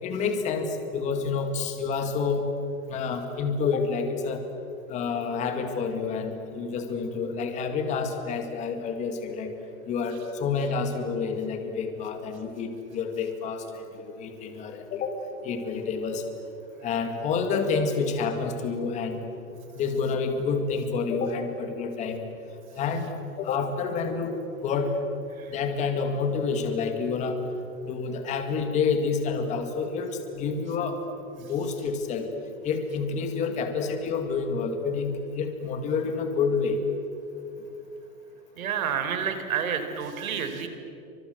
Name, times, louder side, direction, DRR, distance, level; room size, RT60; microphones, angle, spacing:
voice 1, 0.0-2.5 2.9-4.4 4.9-9.5 9.9-15.1 15.4-16.2 16.8-19.2 19.8-22.2 22.8-24.3 24.6-24.9 25.5-27.4 27.8-31.0 31.3-32.3 32.6-36.8, left 5 dB, 15° left, 6 dB, 2.1 m, -28 dB
voice 2, 38.6-40.7, right 7 dB, 75° right, 8 dB, 4.4 m, -29 dB
29.0 x 25.5 x 8.0 m, 2.8 s
supercardioid pair, 175°, 41 cm